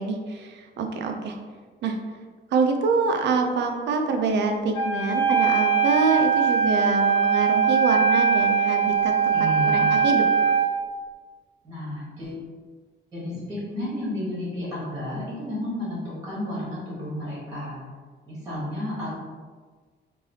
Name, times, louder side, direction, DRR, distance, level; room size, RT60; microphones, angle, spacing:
voice 1, 0.0-1.3 1.8-2.0 2.5-10.2, right 4 dB, 65° right, 4 dB, 0.4 m, -25 dB
Wind instrument woodwind instrument, 4.7-10.7, right 6 dB, 15° left, 0.9 m, -21 dB
voice 2, 9.3-9.9 11.6-12.4 13.1-17.8 18.3-19.1, left 1 dB, 20° right, -8 dB, 1.2 m, -32 dB
3.2 x 2.6 x 2.7 m, 1.5 s
cardioid pair, 165°, 19 cm